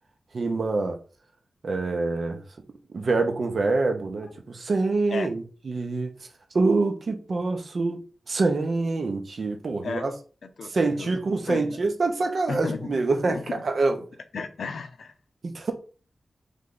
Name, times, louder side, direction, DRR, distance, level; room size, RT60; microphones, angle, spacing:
voice 1, 0.3-1.0 1.6-2.4 2.9-6.1 6.5-10.1 10.7-14.0 15.4-15.7, right 3 dB, 55° right, 0.7 m, -26 dB
voice 2, 10.4-11.1 11.5-11.8 12.5-12.9 13.2-13.6 14.3-15.1, left 4 dB, 85° left, 0.5 m, -34 dB
3.4 x 3.2 x 3.9 m
wide cardioid pair, 135°, 0 cm